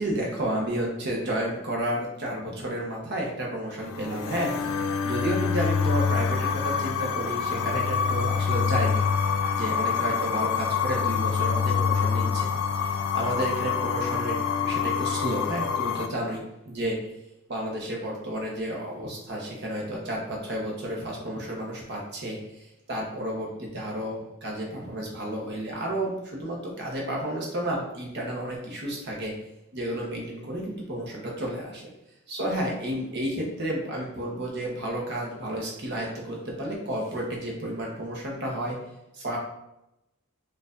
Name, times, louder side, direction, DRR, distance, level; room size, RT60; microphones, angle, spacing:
voice 1, 0.0-9.0 9.5-12.5 13.1-17.1 17.5-22.4 22.9-29.3 29.7-31.9 32.3-38.8 39.1-39.4, right 1 dB, 55° right, -1 dB, 0.9 m, -31 dB
sound 1, 3.8-16.1, left 6 dB, 80° left, 0.3 m, -26 dB
4.4 x 2.5 x 2.5 m, 0.88 s
head